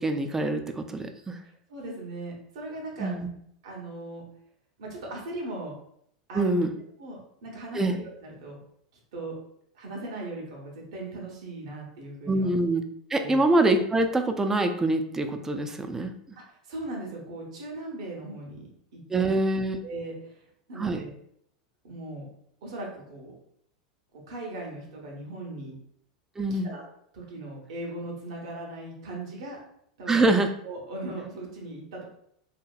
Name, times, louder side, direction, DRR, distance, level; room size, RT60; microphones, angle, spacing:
voice 1, 0.0-1.4 3.0-3.3 6.3-6.7 7.7-8.0 12.3-12.8 13.1-16.1 19.1-19.8 20.8-21.0 26.4-26.7 30.1-30.5, right 2 dB, 15° right, 7 dB, 0.3 m, -25 dB
voice 2, 1.7-3.1 3.6-4.2 4.8-5.7 6.3-6.6 7.0-8.6 9.1-9.3 9.7-12.5 13.2-13.4 16.5-19.3 19.8-21.1 21.8-22.3 22.6-23.3 24.1-25.8 26.5-26.8 27.1-29.6 30.0-30.3 30.6-32.0, right 2 dB, 70° right, -1 dB, 1.0 m, -38 dB
2.8 x 2.7 x 2.3 m, 0.69 s
hypercardioid pair, 95°, 3 cm